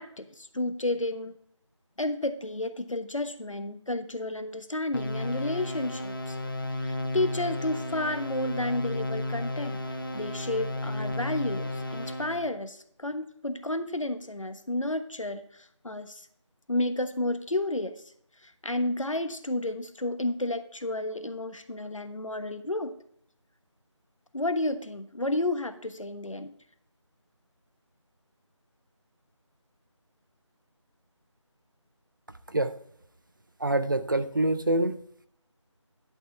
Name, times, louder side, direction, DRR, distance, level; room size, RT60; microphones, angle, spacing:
voice 1, 0.0-1.3 2.0-6.4 6.8-9.8 10.1-16.3 16.7-17.9 18.4-22.9 24.3-26.5, left 1 dB, 85° left, 9 dB, 1.2 m, -31 dB
sound 1, 4.9-12.5, left 1 dB, 45° left, 1.0 m, -33 dB
voice 2, 33.6-35.0, right 1 dB, 40° right, 11 dB, 0.6 m, -25 dB
11.5 x 6.2 x 3.4 m, 0.66 s
figure-of-eight pair, 170°, 16 cm